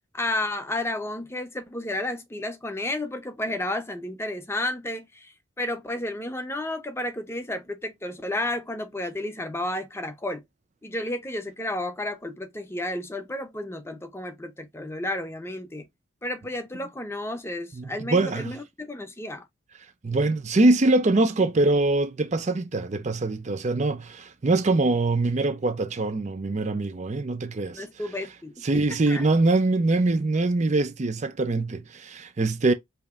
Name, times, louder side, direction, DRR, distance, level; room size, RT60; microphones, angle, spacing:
voice 1, 0.1-10.4 10.8-15.9 16.2-19.5 27.7-29.3, left 1 dB, 10° left, 0.6 m, -32 dB
voice 2, 17.8-18.5 20.0-27.8 28.6-32.7, right 2 dB, 35° right, 0.4 m, -23 dB
5.1 x 2.8 x 2.4 m
head